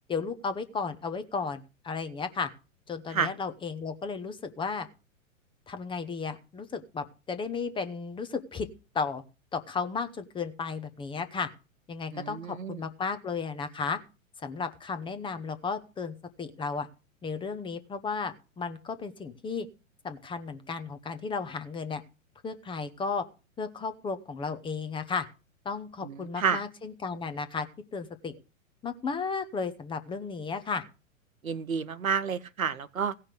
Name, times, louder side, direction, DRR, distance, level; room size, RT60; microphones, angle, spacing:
voice 1, 0.1-2.5 2.9-4.9 5.7-8.7 8.9-9.2 9.5-11.5 11.9-14.0 14.4-16.9 17.2-19.7 20.0-22.0 22.4-23.2 23.6-25.3 25.6-27.7 27.9-28.4 28.8-30.8, left 5 dB, 10° left, 10 dB, 0.9 m, -34 dB
voice 2, 12.1-12.8 26.0-26.6 31.4-33.2, right 6 dB, 80° right, 14 dB, 0.9 m, -30 dB
16.5 x 5.8 x 6.5 m, 0.31 s
figure-of-eight pair, 105°, 41 cm